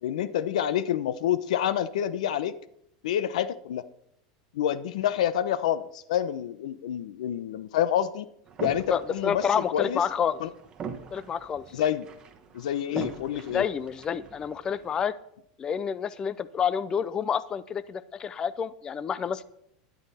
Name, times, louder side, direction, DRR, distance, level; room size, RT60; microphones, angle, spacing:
voice 1, 0.0-2.5 3.0-3.8 4.5-8.3 8.6-10.0 10.4-10.5 11.7-12.1 12.5-13.6, left 10 dB, 90° left, 14 dB, 0.8 m, -28 dB
sound 1, 8.5-15.0, right 6 dB, 25° right, 1.2 m, -43 dB
voice 2, 8.9-10.4 11.1-11.6 12.9-13.0 13.5-15.1 15.6-19.4, left 7 dB, 20° left, 15 dB, 0.5 m, -29 dB
12.0 x 11.5 x 4.3 m, 0.73 s
supercardioid pair, 155°, 4 cm